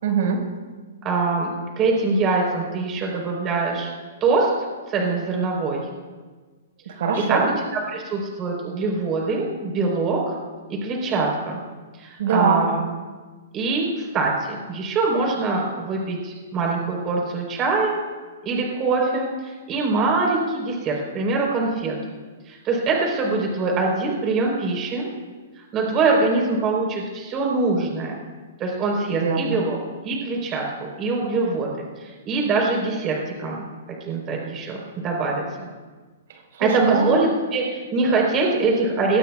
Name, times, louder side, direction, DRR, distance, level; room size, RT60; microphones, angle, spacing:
voice 1, 0.0-0.4 7.0-7.5 12.2-12.6 29.2-29.6 36.3-37.2, right 5 dB, 65° right, 2 dB, 4.9 m, -22 dB
voice 2, 1.0-1.5 1.8-3.9 4.2-4.5 4.9-5.8 7.3-10.3 10.8-11.6 12.0-12.8 13.5-18.0 18.4-21.9 22.5-25.1 25.6-28.2 28.6-29.8 30.0-30.6 31.0-33.6 34.1-35.4 36.6-39.2, right 3 dB, 25° right, 0 dB, 3.9 m, -23 dB
21.5 x 19.0 x 2.4 m, 1.4 s
hypercardioid pair, 140°, 0 cm